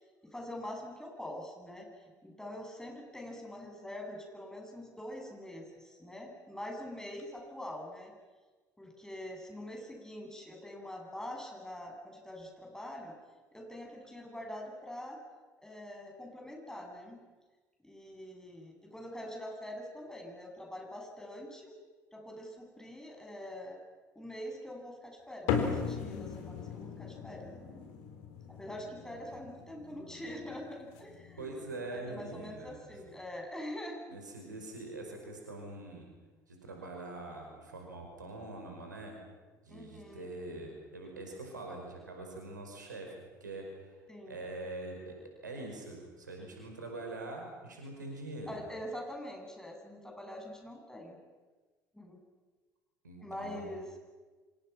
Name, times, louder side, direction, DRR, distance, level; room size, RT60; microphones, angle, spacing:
voice 1, 0.2-1.9 2.2-8.1 8.8-13.1 13.5-15.2 15.6-17.2 17.8-21.7 22.1-23.8 24.1-27.8 28.5-31.5 31.9-34.2 39.7-40.2 44.1-44.4 48.5-51.2 51.9-52.2 53.2-53.9, left 1 dB, 5° left, 1 dB, 7.8 m, -44 dB
sound 1, 25.5-32.2, left 6 dB, 65° left, 3.9 m, -38 dB
voice 2, 31.4-33.0 34.1-36.1 36.5-39.1 39.6-43.1 43.4-44.0 44.3-48.6 53.0-53.7, right 2 dB, 85° right, 2 dB, 5.4 m, -44 dB
29.5 x 26.0 x 5.9 m, 1.3 s
figure-of-eight pair, 60°, 10 cm